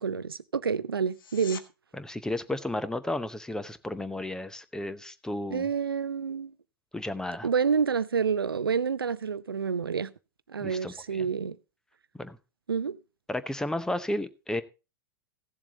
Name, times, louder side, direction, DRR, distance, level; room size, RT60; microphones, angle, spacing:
voice 1, 0.0-1.6 5.5-6.5 7.4-10.1 10.5-11.6 12.7-13.0, right 6 dB, 85° right, 0.5 m, -28 dB
sound 1, 1.1-1.7 13.0-13.1, left 7 dB, 70° left, 1.2 m, -44 dB
voice 2, 1.9-5.7 6.9-7.5 10.6-11.3 12.2-12.4 13.3-14.6, left 1 dB, 5° left, 0.8 m, -33 dB
15.5 x 7.3 x 4.0 m
figure-of-eight pair, 95°, 12 cm